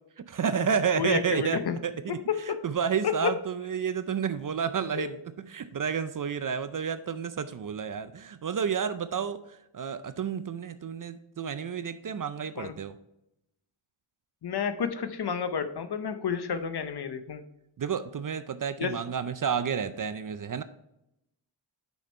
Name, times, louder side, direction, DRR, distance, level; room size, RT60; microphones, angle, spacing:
voice 1, 0.2-2.2 2.5-12.9 17.8-20.6, right 7 dB, 45° right, 12 dB, 0.5 m, -30 dB
voice 2, 1.0-1.8 2.1-2.6 3.0-3.4 4.9-5.1 12.6-12.7 14.4-17.4 18.8-19.0, left 7 dB, 50° left, 10 dB, 0.8 m, -30 dB
6.2 x 5.2 x 4.3 m, 0.83 s
wide cardioid pair, 80°, 49 cm